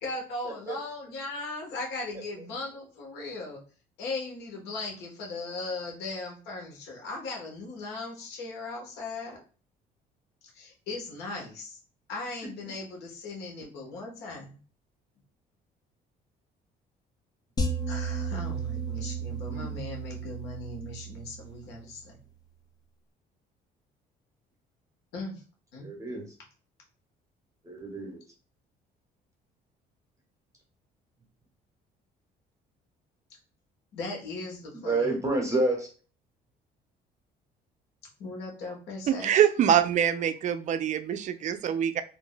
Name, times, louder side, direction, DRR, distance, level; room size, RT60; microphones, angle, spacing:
voice 1, 0.0-3.6 4.0-9.4 10.5-11.8 12.1-14.6 17.9-22.2 25.1-25.4 25.7-26.3 33.9-35.2 38.2-39.4, left 3 dB, 80° left, 0 dB, 1.1 m, -38 dB
sound 1, 17.6-21.9, right 3 dB, 25° left, 0.5 m, -34 dB
voice 2, 25.8-26.2 27.6-28.2 34.7-35.9, right 2 dB, 20° right, 1 dB, 1.0 m, -29 dB
voice 3, 39.1-42.0, right 9 dB, 45° right, 11 dB, 0.4 m, -24 dB
2.5 x 2.1 x 3.8 m, 0.37 s
cardioid pair, 110°, 17 cm